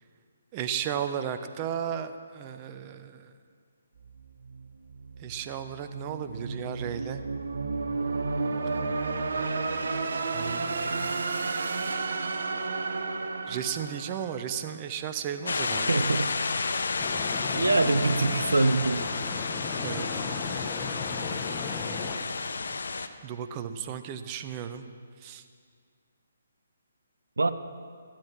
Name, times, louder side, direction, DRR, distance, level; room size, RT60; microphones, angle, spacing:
voice 1, 0.5-3.3 5.2-7.2 10.3-11.3 13.5-16.2 19.8-20.1 23.2-24.9 25.2-25.4, right 9 dB, 30° right, 9 dB, 0.8 m, -35 dB
sound 1, 4.0-15.0, right 3 dB, 65° right, 1.0 m, -32 dB
sound 2, 15.4-23.1, left 4 dB, 65° left, 0.8 m, -31 dB
voice 2, 15.9-16.3 17.5-19.1 27.4-27.5, right 3 dB, 80° right, 11 dB, 0.6 m, -24 dB
sound 3, 17.0-22.2, left 5 dB, 20° left, 1.0 m, -36 dB
14.5 x 11.5 x 6.1 m, 2.1 s
figure-of-eight pair, 140°, 0 cm